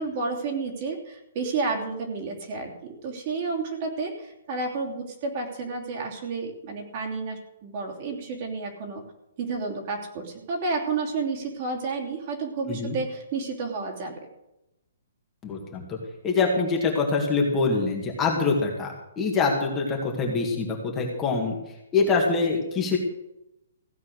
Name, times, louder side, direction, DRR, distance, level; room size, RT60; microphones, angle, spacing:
voice 1, 0.0-9.0 9.4-14.1, right 4 dB, 35° right, 1 dB, 3.0 m, -31 dB
voice 2, 15.4-16.0 16.2-21.6 21.9-23.0, left 4 dB, 15° left, -1 dB, 1.9 m, -24 dB
16.0 x 8.4 x 6.6 m, 0.89 s
hypercardioid pair, 170°, 0 cm